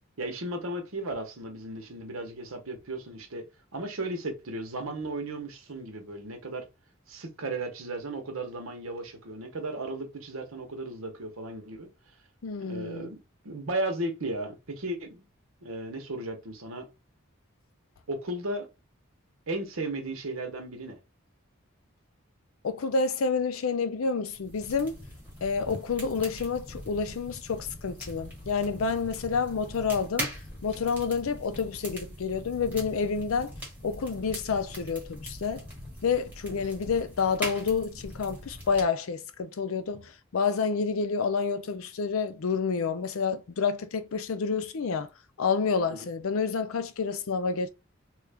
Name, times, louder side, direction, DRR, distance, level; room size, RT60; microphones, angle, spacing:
voice 1, 0.2-3.4 3.7-6.7 7.1-11.9 12.6-13.2 13.4-15.3 15.6-16.9 18.1-18.7 19.5-21.0 36.5-36.6 45.9-46.0, right 2 dB, 85° right, 0.9 m, -35 dB
voice 2, 12.4-13.1 22.6-25.0 25.4-30.3 30.6-33.5 33.8-35.6 36.0-45.1 45.4-47.7, left 5 dB, 85° left, 0.5 m, -29 dB
sound 1, 24.3-38.8, equal, 10° right, 1.2 m, -41 dB
3.1 x 2.4 x 3.3 m
head